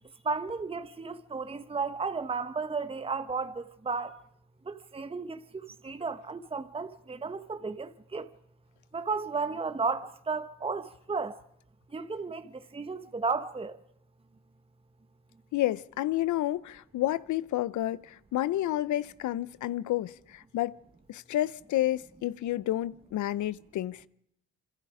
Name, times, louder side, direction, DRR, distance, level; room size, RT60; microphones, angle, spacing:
voice 1, 0.2-4.2 4.6-8.3 8.9-11.4 11.9-13.8, right 4 dB, 20° right, 1.1 m, -34 dB
voice 2, 15.5-20.8 21.1-24.0, left 14 dB, 75° left, 0.8 m, -30 dB
27.0 x 25.5 x 5.0 m
cardioid pair, 90°, 30 cm